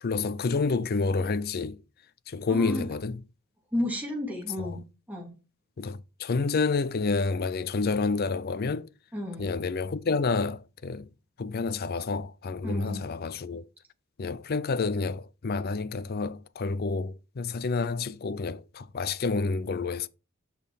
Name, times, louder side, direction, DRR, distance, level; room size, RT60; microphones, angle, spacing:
voice 1, 0.0-1.8 2.3-3.2 4.6-4.7 5.8-8.9 9.4-11.1 11.4-13.6 14.2-20.1, left 4 dB, 45° left, 0.5 m, -29 dB
voice 2, 2.5-2.9 3.7-4.8 5.1-5.3 9.1-9.5 12.6-13.0, left 1 dB, 10° right, 2.9 m, -32 dB
6.4 x 5.4 x 5.7 m
head